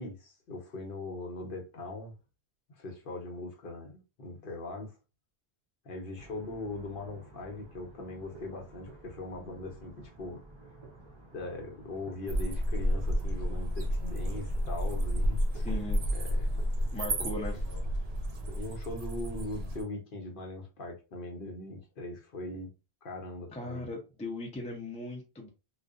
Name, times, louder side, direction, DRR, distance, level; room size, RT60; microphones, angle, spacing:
voice 1, 0.0-2.1 2.7-4.9 5.8-10.4 11.3-16.4 17.3-17.8 18.5-22.7 23.0-23.9, left 2 dB, 60° left, 0.8 m, -41 dB
sound 1, 6.2-18.6, right 2 dB, 30° right, 0.7 m, -52 dB
sound 2, 12.3-19.8, equal, 80° right, 0.9 m, -31 dB
voice 2, 15.5-16.0 16.9-17.6 23.5-25.5, left 1 dB, 10° left, 0.4 m, -38 dB
2.6 x 2.3 x 2.3 m
omnidirectional pair, 1.1 m